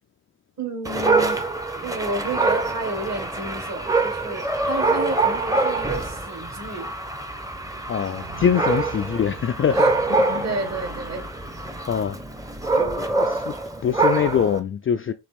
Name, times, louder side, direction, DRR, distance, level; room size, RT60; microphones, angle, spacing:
voice 1, 0.6-1.4 1.8-6.9 9.7-9.9 10.4-11.3, right 2 dB, 40° right, 1.9 m, -31 dB
Dog, 0.8-14.6, right 3 dB, 10° right, 0.8 m, -25 dB
sound 1, 6.8-11.8, right 7 dB, 75° right, 1.1 m, -45 dB
voice 2, 7.9-10.6 11.9-12.2 12.7-13.5 13.8-15.1, left 8 dB, 35° left, 0.4 m, -24 dB
5.2 x 3.0 x 3.4 m
cardioid pair, 75°, 41 cm